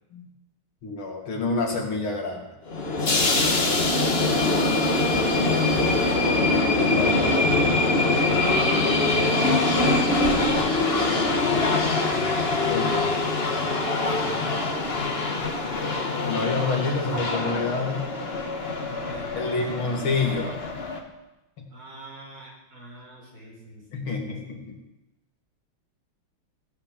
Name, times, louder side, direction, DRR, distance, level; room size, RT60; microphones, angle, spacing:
voice 1, 0.8-2.5 6.9-7.2 12.7-13.0 16.2-18.0 19.3-20.5 21.6-21.7 23.9-24.8, left 3 dB, 70° left, 1 dB, 2.9 m, -27 dB
sound 1, 2.7-21.0, left 2 dB, 30° left, 1.6 m, -23 dB
voice 2, 4.8-5.4 6.6-6.7 9.4-11.3 13.9-14.4 18.7-19.9 21.7-24.6, right 1 dB, 65° right, -2 dB, 5.5 m, -41 dB
16.0 x 8.8 x 7.5 m, 0.97 s
omnidirectional pair, 2.4 m